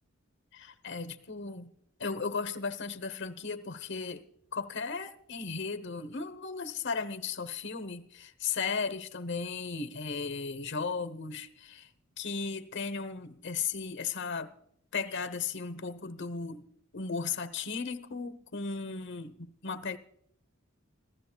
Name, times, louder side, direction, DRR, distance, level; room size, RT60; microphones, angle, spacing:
voice 1, 0.5-1.7 2.0-4.2 4.5-11.9 12.2-14.5 14.9-16.7 16.9-20.0, left 5 dB, 60° left, 1.1 m, -36 dB
26.0 x 15.5 x 2.3 m
head